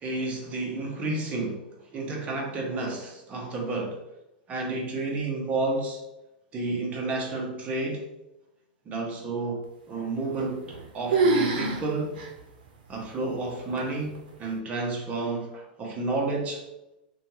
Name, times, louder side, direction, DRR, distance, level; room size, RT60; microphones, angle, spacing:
voice 1, 0.0-1.6 1.9-4.0 4.5-6.0 6.5-8.0 8.9-9.6 9.9-12.2 12.9-16.6, right 2 dB, 25° right, 0 dB, 0.7 m, -31 dB
sound 1, 10.3-10.8 11.1-11.8 12.2-12.3 12.9-13.0 13.8-14.2, right 3 dB, 70° right, 0.6 m, -24 dB
2.5 x 2.2 x 3.0 m, 0.91 s
hypercardioid pair, 130°, 5 cm